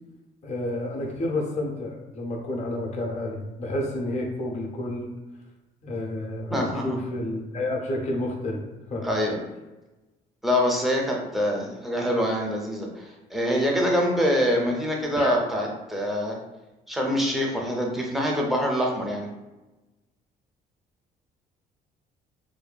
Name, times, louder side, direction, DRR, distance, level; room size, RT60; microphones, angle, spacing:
voice 1, 0.4-5.1 5.8-8.6 8.9-9.1 15.2-15.3, left 1 dB, 45° left, 0 dB, 0.6 m, -30 dB
voice 2, 6.5-7.0 9.0-9.4 10.4-13.0 13.3-16.4 16.9-19.3, equal, ahead, -2 dB, 0.5 m, -25 dB
2.6 x 2.2 x 2.2 m, 1.1 s
cardioid pair, 110°, 17 cm